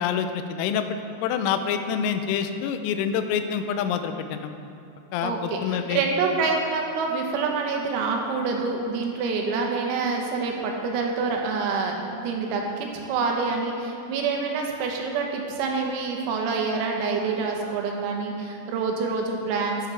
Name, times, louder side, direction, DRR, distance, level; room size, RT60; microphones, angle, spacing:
voice 1, 0.0-4.5 5.1-6.0, left 7 dB, 85° left, 8 dB, 3.3 m, -27 dB
voice 2, 5.2-19.9, right 4 dB, 85° right, 1 dB, 3.9 m, -27 dB
11.5 x 10.5 x 3.4 m, 2.9 s
omnidirectional pair, 6.0 m